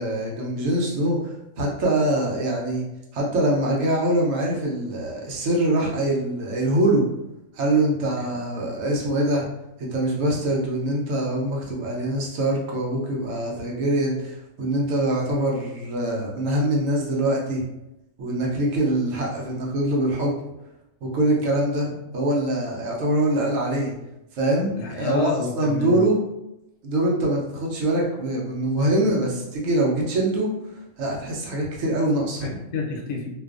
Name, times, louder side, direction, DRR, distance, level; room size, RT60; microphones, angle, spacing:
voice 1, 0.0-2.9 3.1-7.1 7.5-9.4 9.8-17.6 18.2-20.3 21.0-23.9 24.4-25.3 25.6-26.2 26.8-30.5 31.0-32.5, right 1 dB, 70° right, -2 dB, 1.0 m, -23 dB
voice 2, 24.8-26.0 32.4-33.4, left 4 dB, 70° left, 0 dB, 0.9 m, -29 dB
2.5 x 2.3 x 2.3 m, 0.89 s
omnidirectional pair, 1.5 m